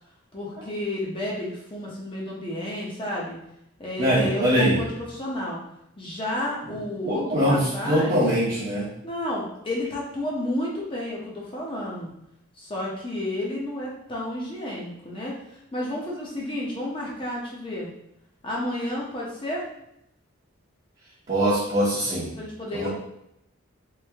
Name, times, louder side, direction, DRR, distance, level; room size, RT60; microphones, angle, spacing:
voice 1, 0.3-3.4 3.8-5.6 6.0-8.2 9.0-12.1 12.6-15.3 15.7-17.9 18.4-19.6 22.4-22.9, left 1 dB, 25° left, -3 dB, 0.7 m, -31 dB
voice 2, 4.0-4.8 7.0-8.9 21.3-22.3 22.7-22.9, equal, 30° right, -9 dB, 0.7 m, -22 dB
3.1 x 2.6 x 3.4 m, 0.79 s
head